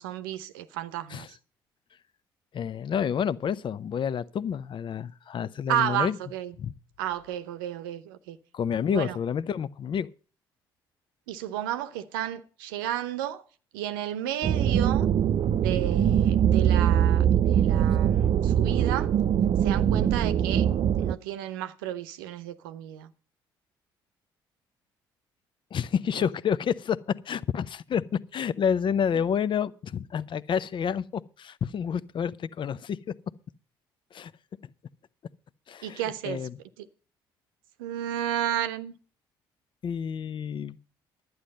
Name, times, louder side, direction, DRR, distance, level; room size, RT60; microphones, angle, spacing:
voice 1, 0.0-1.4 5.7-6.5 7.0-8.4 8.9-9.2 11.3-13.4 13.7-15.1 15.5-19.1 19.6-20.7 21.0-23.1 29.1-29.2 35.8-36.4 36.8-36.9 37.8-38.9, right 11 dB, 80° right, 0.8 m, -32 dB
voice 2, 2.5-6.2 6.6-6.7 8.5-10.1 25.7-33.1 34.1-34.3 35.7-36.6 39.8-40.8, left 7 dB, 45° left, 0.7 m, -29 dB
sound 1, 14.4-21.2, right 9 dB, 50° right, 0.6 m, -22 dB
11.5 x 9.5 x 5.3 m
hypercardioid pair, 55°, 11 cm